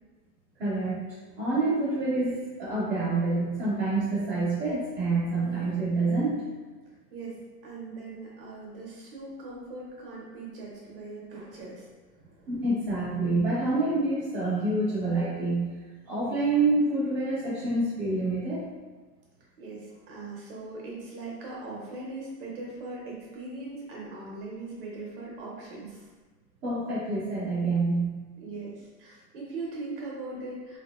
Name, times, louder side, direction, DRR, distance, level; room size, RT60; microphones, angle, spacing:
voice 1, 0.6-1.0 1.4-6.5 12.5-18.7 26.6-28.2, right 2 dB, 5° right, -15 dB, 0.7 m, -27 dB
voice 2, 7.6-11.9 12.1-12.5 19.6-26.1 28.4-30.8, right 3 dB, 35° right, -4 dB, 0.8 m, -40 dB
3.7 x 2.7 x 2.4 m, 1.3 s
supercardioid pair, 175°, 50 cm